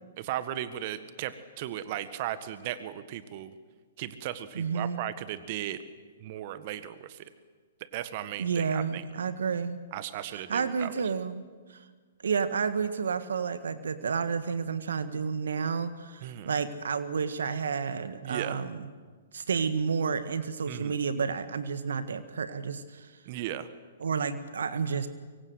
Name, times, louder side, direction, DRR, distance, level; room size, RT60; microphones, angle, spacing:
voice 1, 0.2-3.5 4.0-5.8 6.2-7.3 7.9-9.0 9.9-10.9 16.2-16.5 18.2-18.6 20.7-21.0 23.3-23.7, right 12 dB, 45° right, 12 dB, 1.6 m, -36 dB
voice 2, 4.5-5.0 8.4-9.8 10.3-11.4 11.7-11.9 12.2-18.9 19.3-23.1 24.0-25.1, right 6 dB, 70° right, 11 dB, 1.6 m, -30 dB
24.5 x 24.0 x 8.1 m, 1.5 s
figure-of-eight pair, 120°, 0 cm